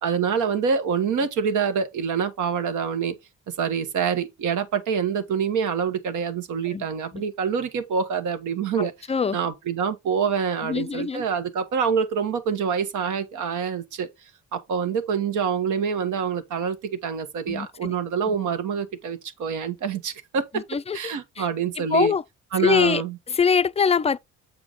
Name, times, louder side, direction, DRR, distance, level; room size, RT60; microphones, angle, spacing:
voice 1, 0.0-3.2 3.5-8.9 9.3-14.1 14.5-20.6 20.9-22.1 22.5-23.2, right 6 dB, 80° right, 1.5 m, -26 dB
voice 2, 8.8-9.4 10.6-11.2 17.5-18.0 20.5-21.5 21.8-22.2 22.6-24.2, left 6 dB, 20° left, 0.4 m, -24 dB
8.0 x 4.7 x 4.0 m
cardioid pair, 90°, 30 cm